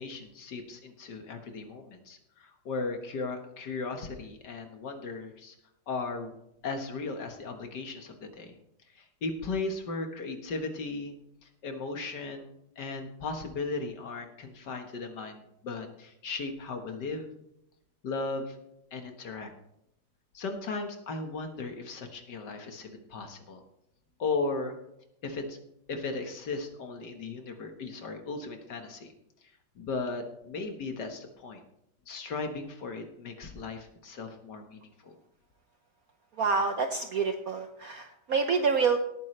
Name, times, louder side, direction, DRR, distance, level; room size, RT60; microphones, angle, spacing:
voice 1, 0.0-5.6 5.9-6.3 6.6-8.5 9.0-11.1 11.4-17.3 18.0-18.6 18.9-19.5 20.3-23.6 24.2-24.8 25.2-25.6 25.9-29.1 29.8-31.6 32.1-35.2, left 3 dB, 55° left, 5 dB, 1.9 m, -36 dB
voice 2, 36.4-39.0, right 5 dB, 60° right, 6 dB, 0.9 m, -27 dB
18.0 x 9.3 x 3.2 m, 0.81 s
omnidirectional pair, 2.3 m